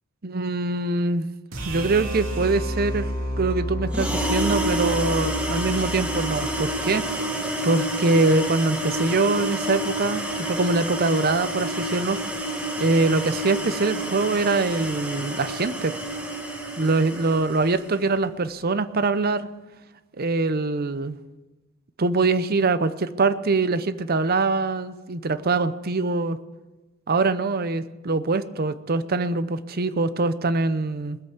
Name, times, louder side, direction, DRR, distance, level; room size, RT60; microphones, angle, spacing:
voice 1, 0.2-1.3 1.6-3.1 3.4-7.3 7.6-12.2 12.8-16.0 16.8-19.5 20.2-21.2 22.0-26.4 27.1-31.2, right 3 dB, 45° right, 14 dB, 0.7 m, -23 dB
sound 1, 1.5-7.7, equal, 80° right, 2.9 m, -31 dB
sound 2, 3.9-17.8, right 1 dB, 5° right, 1.5 m, -29 dB
20.5 x 8.2 x 7.3 m, 1.2 s
head